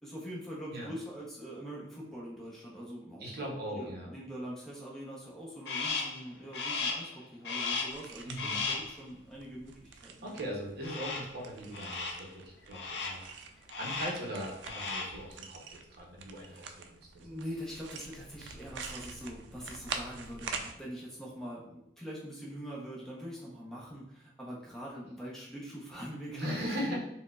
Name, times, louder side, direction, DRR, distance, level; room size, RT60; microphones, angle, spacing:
voice 1, 0.0-10.4 16.5-16.7 17.2-27.0, equal, 5° left, -5 dB, 0.7 m, -43 dB
voice 2, 3.2-4.1 8.3-8.6 10.2-13.2 13.8-15.6 15.9-17.1 26.3-27.0, equal, 60° right, -1 dB, 0.7 m, -39 dB
Crow, 5.7-6.2 6.5-7.1 7.4-8.0 8.4-8.9 10.8-11.4 11.7-12.3 12.7-13.3 13.7-14.3 14.6-15.2, left 4 dB, 70° left, 0.5 m, -35 dB
sound 1, 7.9-20.7, right 5 dB, 90° right, 0.3 m, -46 dB
4.4 x 2.1 x 2.3 m, 0.83 s
head